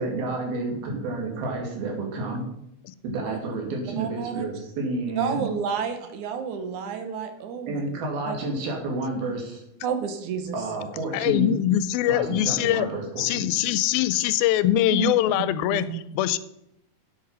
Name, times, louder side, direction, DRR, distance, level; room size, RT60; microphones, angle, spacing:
voice 1, 0.0-2.4 3.0-5.5 7.7-9.6 10.5-11.6 12.1-13.5, right 2 dB, 90° right, 1 dB, 4.3 m, -30 dB
voice 2, 4.0-4.5 5.2-7.8 8.2-8.4 9.8-10.6 14.9-15.2 15.7-16.0, right 7 dB, 65° right, 8 dB, 2.2 m, -30 dB
voice 3, 11.1-12.9 13.2-16.4, left 12 dB, 90° left, 15 dB, 2.5 m, -23 dB
10.5 x 8.0 x 5.6 m, 0.79 s
omnidirectional pair, 4.2 m